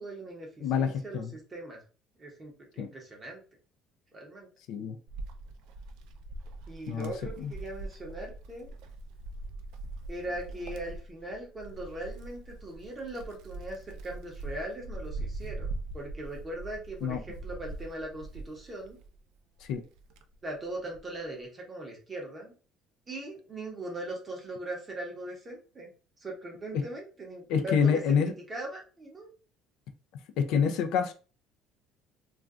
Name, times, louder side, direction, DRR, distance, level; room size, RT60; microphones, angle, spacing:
voice 1, 0.0-1.8 2.2-3.4 4.1-4.5 6.7-8.8 10.1-19.0 20.4-22.5 23.1-25.9 26.2-29.3, right 1 dB, 15° right, 0.8 m, -40 dB
voice 2, 0.6-1.3 2.8-2.9 4.7-5.0 6.9-7.1 7.4-7.5 17.0-17.2 19.6-19.8 26.7-26.8 27.5-28.3 30.4-31.1, left 7 dB, 60° left, 0.4 m, -27 dB
Wind, 5.1-19.2 19.6-21.1, right 2 dB, 70° right, 0.4 m, -42 dB
2.4 x 2.2 x 3.5 m
cardioid pair, 175°, 0 cm